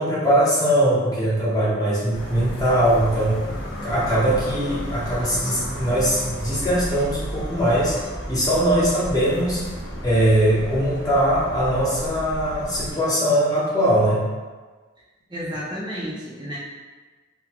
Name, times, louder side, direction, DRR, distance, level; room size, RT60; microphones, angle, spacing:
voice 1, 0.0-3.4 3.8-8.0 8.3-9.6 10.0-14.2, right 1 dB, 20° left, -7 dB, 0.8 m, -21 dB
sound 1, 2.1-12.9, equal, 70° left, 0.8 m, -33 dB
voice 2, 15.3-16.6, equal, 25° right, -7 dB, 0.5 m, -31 dB
3.6 x 2.2 x 2.9 m, 1.3 s
head